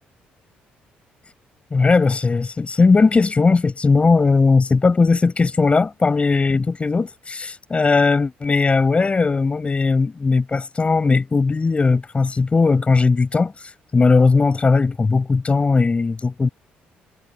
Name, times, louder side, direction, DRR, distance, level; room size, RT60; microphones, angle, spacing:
voice 1, 1.7-16.5, left 4 dB, 30° left, 6.0 m, -18 dB
supercardioid pair, 65°, 4 cm